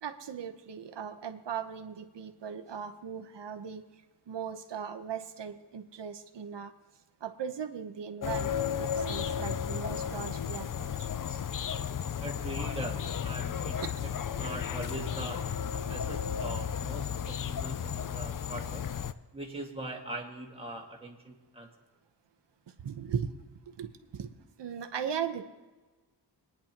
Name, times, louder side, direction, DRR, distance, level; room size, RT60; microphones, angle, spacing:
voice 1, 0.0-3.8 4.3-6.7 7.2-11.5 13.8-13.9 22.8-23.3 23.7-24.3 24.6-25.4, right 7 dB, 90° right, 8 dB, 1.0 m, -38 dB
sound 1, 8.2-19.1, left 8 dB, 50° left, 0.5 m, -34 dB
voice 2, 12.2-14.1 14.4-15.4 15.7-18.9 19.3-21.7, right 1 dB, 15° right, -1 dB, 1.9 m, -41 dB
24.0 x 10.0 x 3.0 m, 1.2 s
wide cardioid pair, 140°, 41 cm